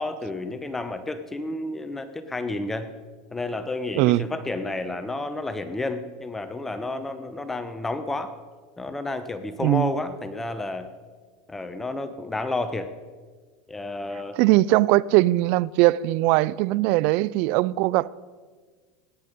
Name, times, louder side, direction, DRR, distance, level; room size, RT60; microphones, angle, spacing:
voice 1, 0.0-2.9 3.3-8.3 8.8-10.9 11.5-12.9 13.7-14.4, left 2 dB, 10° left, 0.9 m, -31 dB
voice 2, 9.6-9.9 14.4-18.1, right 18 dB, 60° right, 0.4 m, -20 dB
17.0 x 10.5 x 5.2 m
supercardioid pair, 110°, 3 cm